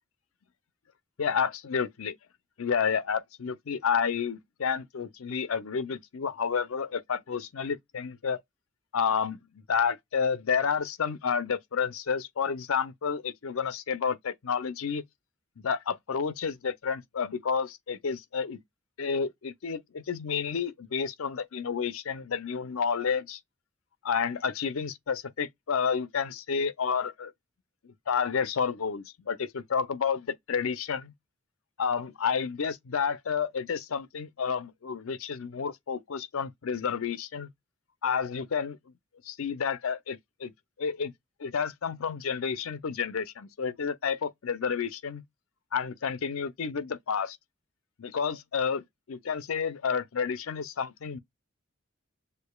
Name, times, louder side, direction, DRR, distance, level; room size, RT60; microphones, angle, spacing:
voice 1, 1.2-2.2 2.6-8.4 8.9-15.0 15.6-18.6 19.0-23.4 24.0-27.3 28.1-31.1 31.8-37.5 38.0-38.8 39.2-40.5 40.8-41.1 41.4-45.2 45.7-47.4 48.0-51.2, left 6 dB, 75° left, 0.5 m, -30 dB
6.8 x 2.5 x 2.2 m
head